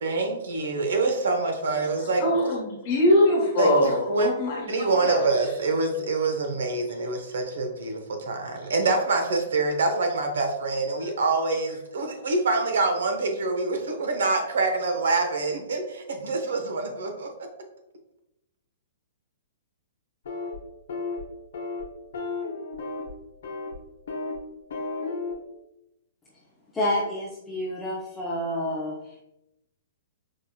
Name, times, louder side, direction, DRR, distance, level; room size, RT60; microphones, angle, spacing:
voice 1, 0.0-2.2 3.6-4.3 4.7-17.3, right 3 dB, 85° right, 4 dB, 0.7 m, -26 dB
voice 2, 2.2-5.2, left 1 dB, 35° left, -3 dB, 1.2 m, -22 dB
sound 1, 20.2-20.6 20.9-21.2 21.5-21.8 22.1-23.1 23.4-23.7 24.1-24.4 24.7-25.3, left 3 dB, 65° left, 0.8 m, -33 dB
voice 3, 26.7-29.2, left 1 dB, 10° left, -5 dB, 0.4 m, -29 dB
4.6 x 2.7 x 2.2 m, 0.88 s
hypercardioid pair, 170°, 0 cm